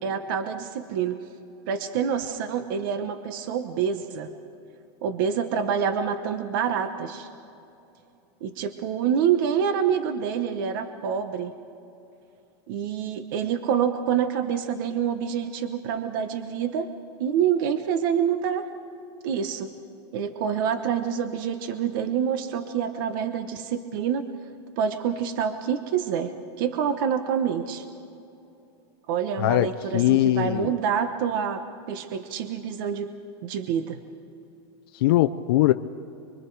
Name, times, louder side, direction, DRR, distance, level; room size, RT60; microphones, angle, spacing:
voice 1, 0.0-1.2 1.7-4.3 5.0-7.3 8.4-11.5 12.7-16.9 17.2-18.7 19.2-19.7 20.1-24.2 24.8-27.8 29.1-33.1 33.4-34.0, right 8 dB, 50° right, 9 dB, 1.0 m, -27 dB
voice 2, 29.9-30.7 35.0-35.7, left 15 dB, 55° left, 8 dB, 0.5 m, -20 dB
24.5 x 24.5 x 4.7 m, 2.8 s
supercardioid pair, 170°, 14 cm